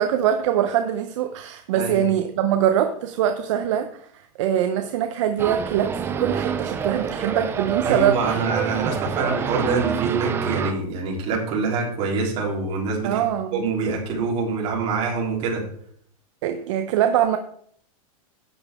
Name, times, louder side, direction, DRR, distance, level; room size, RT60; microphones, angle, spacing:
voice 1, 0.0-8.4 13.0-13.6 16.4-17.4, right 10 dB, 55° right, 7 dB, 0.8 m, -23 dB
sound 1, 5.4-10.7, right 6 dB, 10° right, 0.5 m, -27 dB
voice 2, 7.8-13.2 13.5-15.6, right 4 dB, 30° right, -2 dB, 3.4 m, -25 dB
12.0 x 8.2 x 3.6 m, 0.63 s
supercardioid pair, 165°, 19 cm